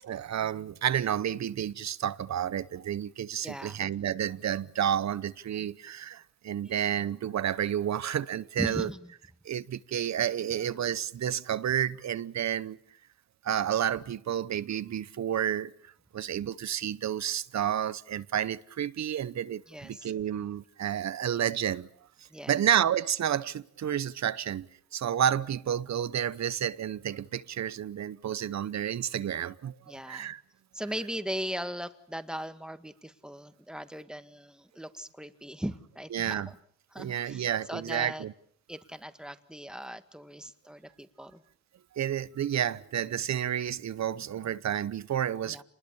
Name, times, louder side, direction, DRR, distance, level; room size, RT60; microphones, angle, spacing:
voice 1, 0.0-8.9 9.4-12.8 13.4-15.7 16.1-21.9 22.5-24.7 24.9-30.4 36.1-36.5 37.0-38.3 41.9-45.6, right 10 dB, 65° right, 0.9 m, -30 dB
voice 2, 3.4-3.8 6.6-6.8 8.6-9.1 19.7-20.1 22.3-22.6 29.9-30.3 30.7-36.6 36.9-38.3 38.7-41.4 45.5-45.6, equal, 5° right, 1.8 m, -38 dB
27.5 x 20.5 x 7.1 m
cardioid pair, 80°, 30 cm